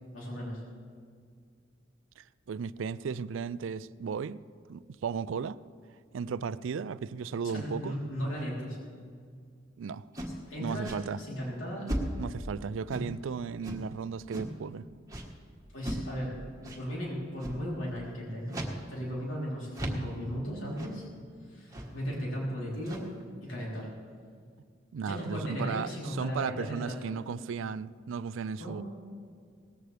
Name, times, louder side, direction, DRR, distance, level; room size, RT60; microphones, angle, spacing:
voice 1, 0.1-0.6 7.4-8.8 10.2-11.9 15.7-16.3 16.7-21.1 21.4-23.1 23.4-23.9 25.0-27.1 28.6-28.8, equal, 85° left, 3.6 m, -36 dB
voice 2, 2.2-4.4 4.7-5.6 6.1-8.0 9.8-10.1 10.6-11.2 12.2-14.9 24.9-28.8, right 6 dB, 75° right, 0.4 m, -35 dB
sound 1, 10.1-10.4 10.8-11.0 11.9-12.3 12.9-13.2 13.6-13.8 14.3-14.6 15.1-15.3 15.8-16.1 16.6-16.8 17.4-17.6 18.5-18.8 19.1-19.2 19.7-20.1 20.8-21.0 21.7-22.0 22.7-23.2, equal, 15° right, 1.4 m, -35 dB
18.5 x 14.5 x 3.4 m
head